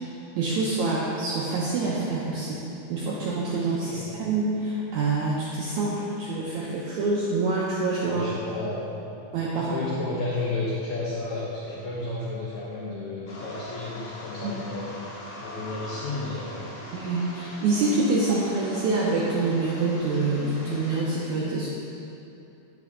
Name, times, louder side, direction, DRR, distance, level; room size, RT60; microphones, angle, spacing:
voice 1, 0.4-8.3 9.3-9.7 14.4-14.5 16.9-21.7, right 3 dB, 80° right, -6 dB, 1.7 m, -26 dB
voice 2, 8.0-9.0 9.5-14.9 15.4-16.8, left 2 dB, 75° left, -7 dB, 1.7 m, -32 dB
sound 1, 13.3-21.0, left 1 dB, 45° left, 1.8 m, -41 dB
9.2 x 6.2 x 3.6 m, 2.8 s
omnidirectional pair, 4.3 m